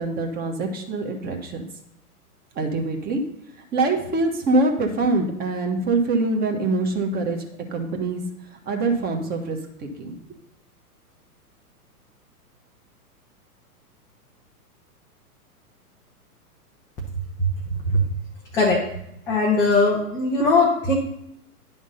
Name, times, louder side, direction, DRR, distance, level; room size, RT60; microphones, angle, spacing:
voice 1, 0.0-1.7 2.5-3.2 3.7-7.4 7.7-8.2 8.7-10.1, right 3 dB, 20° right, 3 dB, 1.3 m, -24 dB
voice 2, 17.4-18.0 18.5-18.8 19.3-20.9, left 2 dB, 10° left, -3 dB, 0.4 m, -20 dB
10.5 x 3.6 x 5.6 m, 0.79 s
figure-of-eight pair, 110°, 46 cm